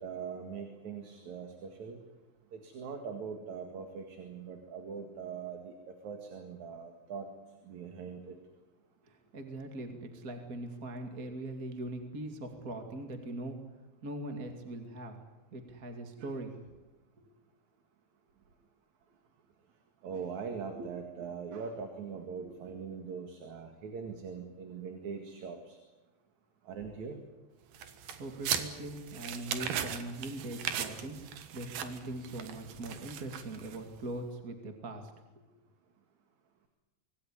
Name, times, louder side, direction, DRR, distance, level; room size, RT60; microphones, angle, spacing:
voice 1, 0.0-2.0 2.5-5.7 6.0-7.3 7.7-8.3 16.2-16.3 20.0-25.8 26.7-27.2, right 6 dB, 60° right, 5 dB, 3.2 m, -41 dB
voice 2, 9.0-13.6 14.0-15.2 15.5-16.6 27.8-35.1, right 2 dB, 30° right, 4 dB, 2.4 m, -41 dB
sound 1, 27.7-34.0, right 9 dB, 85° right, 3.3 m, -38 dB
25.5 x 19.0 x 9.9 m, 1.1 s
omnidirectional pair, 4.0 m